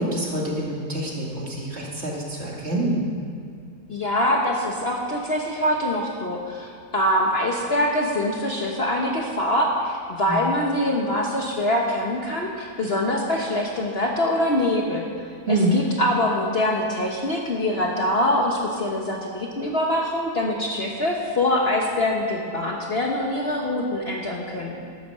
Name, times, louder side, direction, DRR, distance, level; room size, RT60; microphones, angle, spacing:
voice 1, 0.0-3.0 10.3-10.5 15.5-15.7, right 1 dB, 40° right, -3 dB, 2.3 m, -26 dB
voice 2, 3.9-15.0 15.5-24.8, left 1 dB, 40° left, -1 dB, 1.2 m, -24 dB
12.0 x 9.2 x 6.7 m, 2.4 s
omnidirectional pair, 1.8 m